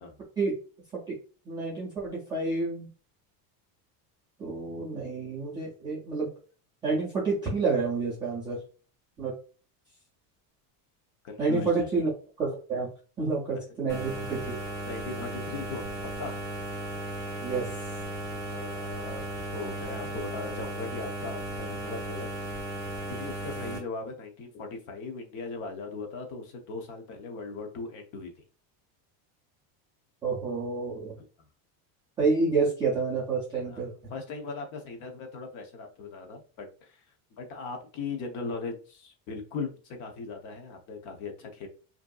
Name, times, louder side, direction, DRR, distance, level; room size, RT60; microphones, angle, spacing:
voice 1, 1.5-2.9 4.4-6.3 6.8-8.6 9.2-9.3 11.4-12.1 12.4-12.9 13.2-14.6 17.4-17.7 30.2-31.2 32.2-33.9, right 4 dB, 10° right, -8 dB, 0.3 m, -29 dB
voice 2, 11.2-11.9 13.5-13.6 14.9-16.4 18.5-19.2 19.5-22.3 23.1-28.3 31.2-31.3 33.5-37.0 37.4-41.7, left 4 dB, 40° left, 4 dB, 0.8 m, -39 dB
sound 1, 13.9-23.8, right 1 dB, 10° left, 0.9 m, -36 dB
4.9 x 2.7 x 2.3 m, 0.38 s
cardioid pair, 180°, 45 cm